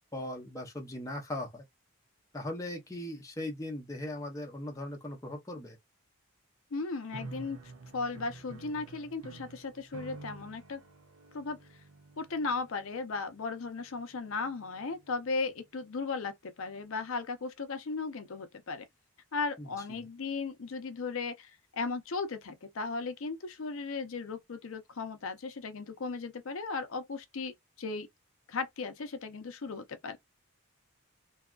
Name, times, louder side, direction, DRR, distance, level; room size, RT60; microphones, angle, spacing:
voice 1, 0.1-1.6 2.3-5.8 19.6-20.1, left 1 dB, 15° left, 0.6 m, -39 dB
voice 2, 6.7-7.6 7.9-10.8 11.3-11.6 12.2-18.9 19.3-28.1 28.5-30.2, left 4 dB, 70° left, 0.6 m, -36 dB
sound 1, 7.1-15.4, right 3 dB, 90° right, 0.6 m, -50 dB
2.7 x 2.2 x 2.3 m
head